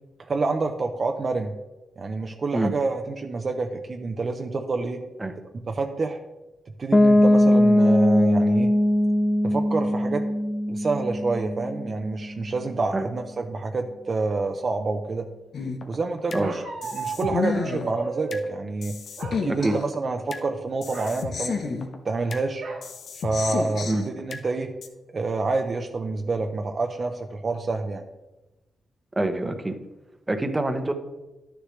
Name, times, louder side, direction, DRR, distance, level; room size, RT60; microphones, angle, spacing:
voice 1, 0.2-1.5 2.0-5.0 5.7-6.2 6.8-8.7 9.4-10.2 10.7-15.3 15.9-16.6 16.9-18.9 19.4-21.8 22.0-22.7 23.2-24.7 25.1-28.0, right 3 dB, 45° right, 4 dB, 0.7 m, -28 dB
Piano, 6.9-12.6, left 1 dB, 15° left, 0.4 m, -20 dB
sound 1, 15.5-16.4 16.8-18.4 18.8-20.4 20.8-22.4 22.8-24.4 24.8-24.9, left 5 dB, 70° left, 0.8 m, -31 dB
Bark, 16.4-18.5 19.2-19.9 20.2-20.5 20.8-21.2 22.6-22.9 23.4-23.5 23.8-24.3, right 4 dB, 80° right, 1.7 m, -34 dB
voice 2, 29.2-29.8 30.3-30.9, right 1 dB, 20° right, 7 dB, 0.9 m, -25 dB
11.0 x 6.7 x 3.2 m, 1.0 s
cardioid pair, 85°, 0 cm